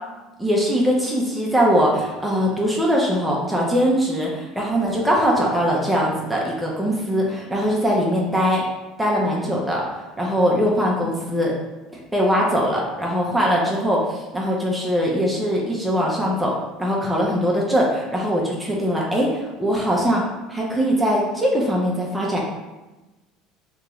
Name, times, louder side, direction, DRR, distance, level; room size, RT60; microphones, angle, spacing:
voice 1, 0.4-8.6 9.0-11.5 11.9-16.5 16.8-20.2 20.5-22.4, equal, 10° right, -3 dB, 0.8 m, -21 dB
3.0 x 2.8 x 3.6 m, 1.1 s
hypercardioid pair, 75°, 0 cm